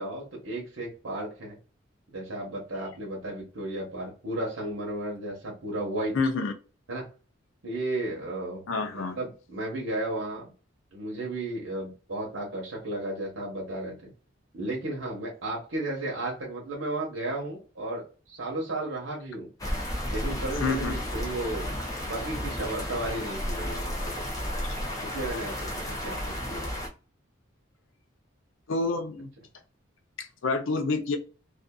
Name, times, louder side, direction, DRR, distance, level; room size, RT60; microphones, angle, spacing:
voice 1, 0.0-1.6 2.1-6.1 6.9-7.1 7.6-8.6 8.9-10.5 10.9-14.1 14.5-19.5 20.1-24.5 25.1-26.7, right 1 dB, 75° right, 0.9 m, -34 dB
voice 2, 6.1-6.5 8.7-9.2 20.6-21.0 28.7-29.3 30.2-31.2, left 3 dB, 75° left, 0.5 m, -28 dB
sound 1, 19.6-26.9, equal, 15° left, 0.6 m, -33 dB
2.5 x 2.4 x 2.3 m
head